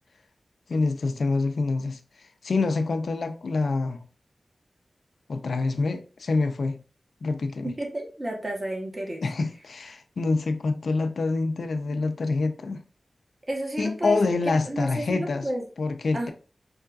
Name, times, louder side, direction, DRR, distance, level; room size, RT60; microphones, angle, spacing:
voice 1, 0.7-2.0 2.4-4.1 5.3-6.8 7.2-7.7 9.2-12.8 13.8-15.5 15.8-16.3, left 3 dB, 80° left, 0.5 m, -26 dB
voice 2, 7.6-9.2 13.5-15.6 16.1-16.3, right 1 dB, 40° right, 1.0 m, -31 dB
5.4 x 2.2 x 2.4 m
cardioid pair, 50°, 0 cm